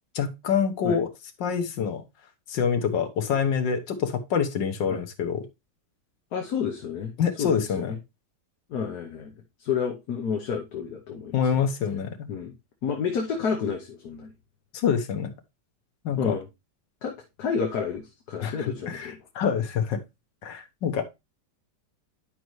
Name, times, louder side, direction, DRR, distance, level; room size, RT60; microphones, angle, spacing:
voice 1, 0.1-1.1 1.4-2.0 2.5-5.4 7.2-7.9 11.3-12.3 14.7-15.3 16.0-16.4 18.4-20.0 20.4-21.0, left 7 dB, 80° left, 1.7 m, -26 dB
voice 2, 6.3-7.1 7.4-7.5 7.8-8.0 8.7-9.3 9.6-11.6 12.3-12.5 12.8-14.3 16.2-16.4 17.0-19.2, left 6 dB, 65° left, 1.5 m, -30 dB
10.5 x 5.3 x 3.1 m
omnidirectional pair, 1.9 m